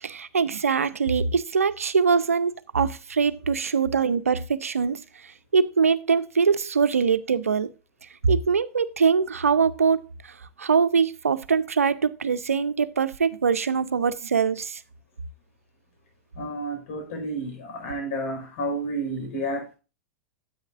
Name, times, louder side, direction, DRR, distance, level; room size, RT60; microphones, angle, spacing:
voice 1, 0.0-5.0 5.5-7.7 8.2-10.0 10.6-14.8, right 5 dB, 85° right, 0.6 m, -23 dB
voice 2, 16.3-19.8, right 1 dB, 65° left, 4.6 m, -31 dB
9.7 x 8.7 x 2.5 m
hypercardioid pair, 95°, 7 cm